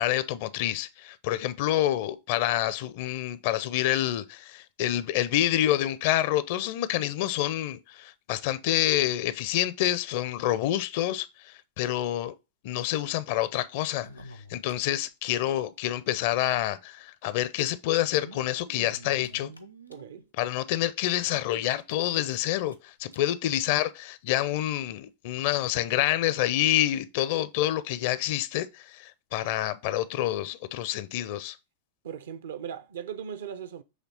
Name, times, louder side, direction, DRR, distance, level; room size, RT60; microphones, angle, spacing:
voice 1, 0.0-12.3 12.6-14.1 14.5-19.5 20.4-31.6, left 13 dB, 50° left, 0.5 m, -27 dB
sound 1, 13.9-15.3 15.6-15.7 15.9-16.0 17.0-17.1 18.0-20.3 20.8-20.9 21.3-21.4 21.8-22.8 23.1-23.2 23.5-23.7 24.4-24.5, right 1 dB, 90° left, 0.7 m, -48 dB
voice 2, 19.9-20.3 32.0-33.8, right 8 dB, 60° right, 0.7 m, -38 dB
7.2 x 3.3 x 4.0 m
figure-of-eight pair, 90°, 0 cm